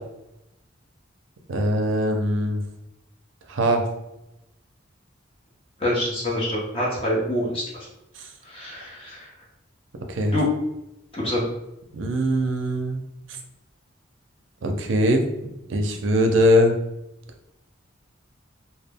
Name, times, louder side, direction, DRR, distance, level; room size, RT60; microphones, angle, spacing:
voice 1, 1.5-2.6 3.5-3.8 8.2-8.3 10.1-10.3 11.9-13.0 14.6-15.2 15.7-16.7, equal, 75° right, 4 dB, 0.4 m, -21 dB
voice 2, 5.8-7.9 8.5-9.3 10.3-10.4 11.1-11.5, left 1 dB, 30° left, -5 dB, 0.6 m, -26 dB
2.2 x 2.1 x 3.3 m, 0.89 s
head